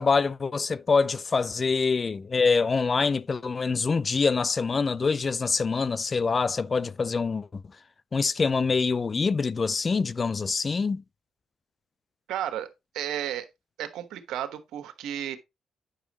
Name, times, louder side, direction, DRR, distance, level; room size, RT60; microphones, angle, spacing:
voice 1, 0.0-7.6 8.1-11.0, left 4 dB, 35° left, 0.3 m, -25 dB
voice 2, 12.3-12.7 12.9-13.5 13.8-15.4, right 11 dB, 85° right, 1.2 m, -33 dB
8.8 x 6.0 x 3.0 m
cardioid pair, 90°, 0 cm